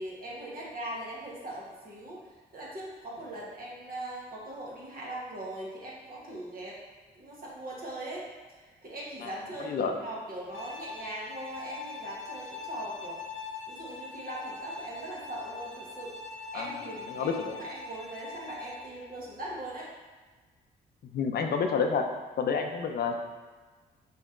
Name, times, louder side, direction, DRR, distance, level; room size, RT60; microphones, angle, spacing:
voice 1, 0.0-6.8 7.1-13.2 13.7-19.9, right 1 dB, 50° right, -5 dB, 1.3 m, -40 dB
Bowed string instrument, 10.5-18.9, left 4 dB, 90° left, 0.9 m, -42 dB
voice 2, 16.5-17.6 21.1-22.0 22.4-23.2, left 5 dB, 55° left, 4 dB, 0.6 m, -29 dB
4.2 x 3.0 x 3.7 m, 1.3 s
supercardioid pair, 65°, 19 cm